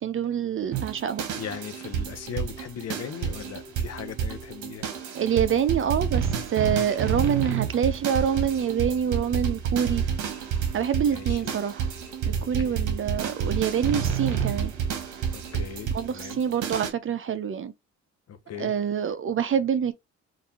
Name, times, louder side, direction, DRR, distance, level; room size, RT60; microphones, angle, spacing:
voice 1, 0.0-1.2 5.1-10.0 10.7-11.9 12.3-14.7 15.9-17.7 18.6-19.9, right 8 dB, 45° right, 0.6 m, -26 dB
sound 1, 0.7-16.9, right 7 dB, 75° right, 1.2 m, -29 dB
voice 2, 1.4-4.9 11.1-11.5 12.4-12.9 15.3-16.4 18.3-18.7, left 8 dB, 55° left, 0.9 m, -38 dB
4.0 x 2.6 x 2.9 m
cardioid pair, 90°, 30 cm